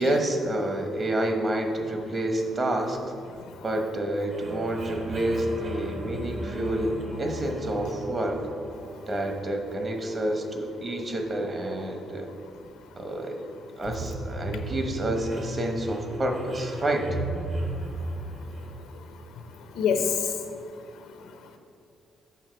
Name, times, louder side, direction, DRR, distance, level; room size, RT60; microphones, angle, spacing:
voice 1, 0.0-3.0 3.6-8.5 9.1-12.3 13.0-13.4 13.8-17.1, right 1 dB, 35° right, 4 dB, 1.0 m, -28 dB
sound 1, 4.3-19.7, right 1 dB, 60° right, 1.4 m, -37 dB
voice 2, 17.7-21.6, left 6 dB, 85° left, 6 dB, 0.7 m, -32 dB
7.3 x 5.9 x 4.5 m, 2.4 s
cardioid pair, 90°, 0 cm